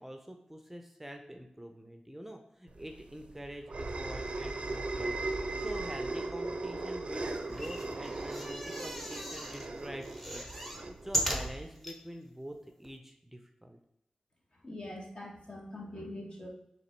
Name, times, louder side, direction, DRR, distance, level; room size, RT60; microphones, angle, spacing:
voice 1, 0.0-5.2 5.6-10.5 10.7-13.8, equal, 10° right, 4 dB, 0.5 m, -45 dB
sound 1, 2.8-11.6, right 2 dB, 60° right, 0.5 m, -38 dB
sound 2, 7.4-9.7 10.0-12.0 12.6-12.7 12.8-12.9, equal, 10° left, 0.9 m, -37 dB
voice 2, 14.6-16.5, left 1 dB, 45° left, -1 dB, 1.3 m, -43 dB
3.9 x 3.0 x 4.4 m, 0.83 s
cardioid pair, 40°, 2 cm